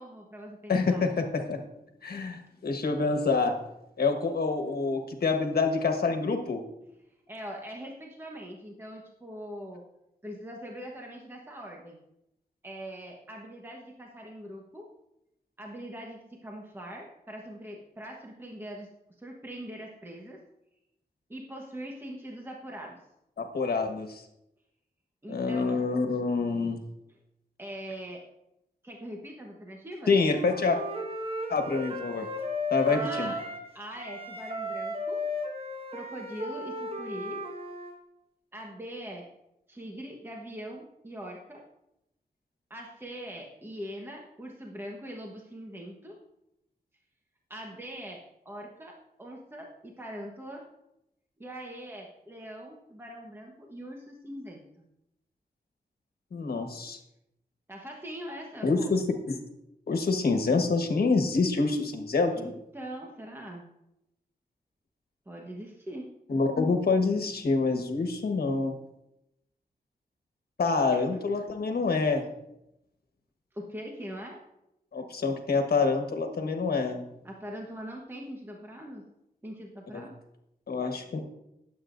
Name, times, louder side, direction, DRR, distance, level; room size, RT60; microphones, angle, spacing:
voice 1, 0.0-1.1 7.3-9.8 10.2-12.0 12.6-14.9 15.6-18.9 19.2-20.4 21.3-23.0 25.2-25.8 27.6-28.2 28.8-30.1 32.9-33.4 33.7-35.2 35.9-37.4 38.5-39.2 39.7-41.6 42.7-46.2 47.5-48.2 48.4-50.6 51.4-54.8 57.7-59.0 62.3-63.7 65.3-66.1 70.9-71.0 73.5-74.4 77.2-79.0 79.4-80.1, equal, 15° right, -1 dB, 1.2 m, -42 dB
voice 2, 0.7-1.6 2.0-3.5 4.0-6.6 23.4-24.2 25.3-26.8 30.1-30.8 31.5-32.3 32.7-33.3 56.3-57.0 58.6-59.4 59.9-62.5 66.3-68.8 70.6-72.2 74.9-77.0 79.9-80.0 80.7-81.2, left 4 dB, 75° left, 4 dB, 1.4 m, -26 dB
Wind instrument woodwind instrument, 30.0-33.7 34.0-37.9, left 1 dB, 35° right, 1.4 m, -35 dB
19.5 x 8.0 x 2.6 m, 0.86 s
wide cardioid pair, 140°, 16 cm